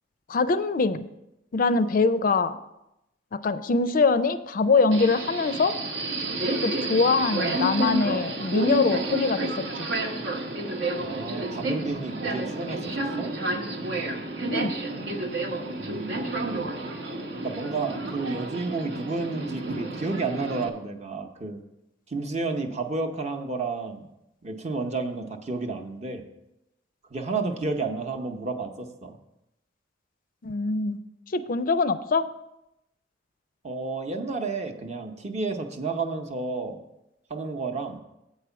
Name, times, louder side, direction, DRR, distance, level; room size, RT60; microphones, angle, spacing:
voice 1, 0.3-1.1 1.5-2.6 3.3-5.7 6.6-9.9 14.5-14.8 30.4-31.0 31.3-32.2, left 4 dB, 50° left, 12 dB, 0.4 m, -23 dB
Subway metro underground, 4.9-20.7, right 2 dB, 70° right, 0.9 m, -30 dB
voice 2, 11.0-13.3 15.8-16.7 17.4-21.6 22.1-24.1 24.4-26.2 27.1-29.2 33.6-36.8 37.3-38.0, right 3 dB, 40° right, 6 dB, 0.7 m, -31 dB
8.1 x 4.8 x 6.9 m, 0.88 s
head